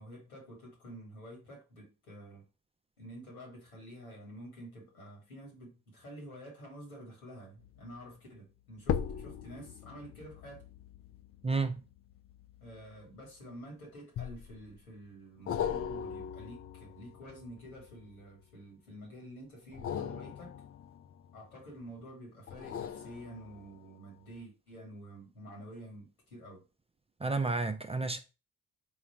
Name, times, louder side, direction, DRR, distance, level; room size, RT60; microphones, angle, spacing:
voice 1, 0.0-2.4 3.0-10.6 12.6-20.6 21.3-26.6, equal, 90° left, 1.5 m, -49 dB
sound 1, 7.6-7.9 8.8-13.5 14.2-14.8 15.5-18.4 19.6-21.7 22.5-23.9 24.4-24.5, left 8 dB, 35° left, 0.5 m, -40 dB
voice 2, 11.4-11.8 27.2-28.2, right 3 dB, 15° right, 0.5 m, -31 dB
3.8 x 2.3 x 4.3 m
hypercardioid pair, 45°, 41 cm